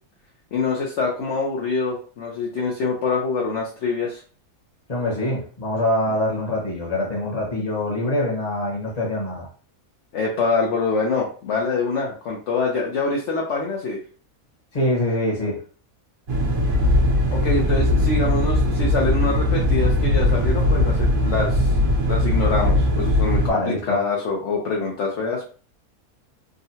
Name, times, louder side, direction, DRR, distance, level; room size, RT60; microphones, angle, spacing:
voice 1, 0.5-4.2 10.1-14.0 17.3-21.7 22.1-23.4 23.7-25.5, left 4 dB, 60° left, -2 dB, 0.8 m, -25 dB
voice 2, 4.9-9.5 14.7-15.6 23.4-24.0, left 1 dB, 30° left, -2 dB, 1.0 m, -24 dB
sound 1, 16.3-23.5, left 1 dB, 60° right, 1.3 m, -19 dB
3.7 x 2.1 x 2.7 m, 0.40 s
omnidirectional pair, 1.5 m